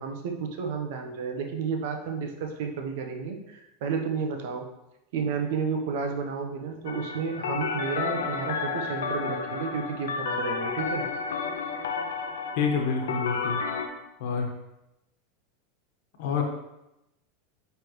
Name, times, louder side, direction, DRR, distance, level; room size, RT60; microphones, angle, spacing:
voice 1, 0.0-4.7 5.1-11.1, right 5 dB, 70° right, 4 dB, 0.9 m, -31 dB
sound 1, 6.9-13.9, left 5 dB, 85° left, 0.6 m, -31 dB
voice 2, 12.6-13.6 14.2-14.5 16.2-16.4, left 5 dB, 70° left, 3 dB, 1.2 m, -27 dB
9.0 x 3.4 x 3.1 m, 0.91 s
hypercardioid pair, 100°, 0 cm